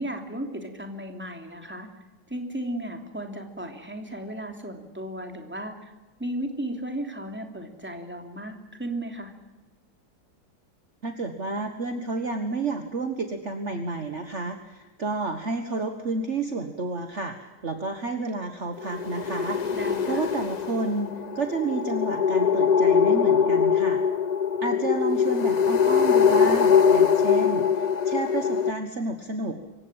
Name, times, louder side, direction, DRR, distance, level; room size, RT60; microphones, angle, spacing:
voice 1, 0.0-1.9 2.3-5.9 6.2-9.3 19.7-20.3, right 1 dB, 5° right, 4 dB, 3.0 m, -35 dB
voice 2, 11.0-19.8 20.1-24.0 24.6-29.6, right 3 dB, 40° right, 6 dB, 1.7 m, -30 dB
sound 1, 18.8-28.7, left 7 dB, 40° left, 0.6 m, -22 dB
26.0 x 16.0 x 8.9 m, 1.1 s
omnidirectional pair, 1.9 m